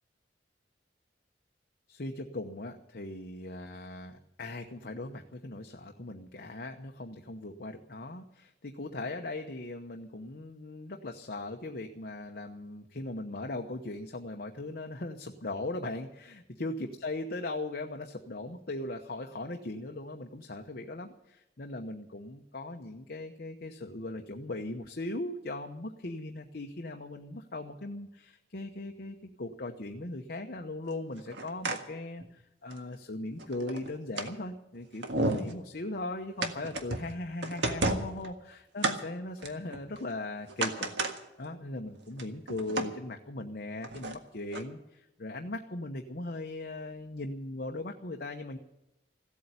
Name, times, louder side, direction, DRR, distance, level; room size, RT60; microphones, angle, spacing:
voice 1, 1.9-16.7 17.0-38.3 38.7-48.6, left 2 dB, 55° left, 3 dB, 1.0 m, -39 dB
sound 1, 31.2-31.8 32.2-32.3 32.7-32.8 33.4-34.3 34.7-34.8 35.0-35.5 36.4-37.1 37.4-38.3 38.8-39.0 39.4-40.1 40.5-41.2 41.5-41.6 42.0-42.9 43.8-44.1 44.5-44.6, right 2 dB, 80° right, 1.7 m, -32 dB
16.0 x 8.5 x 9.8 m, 0.91 s
head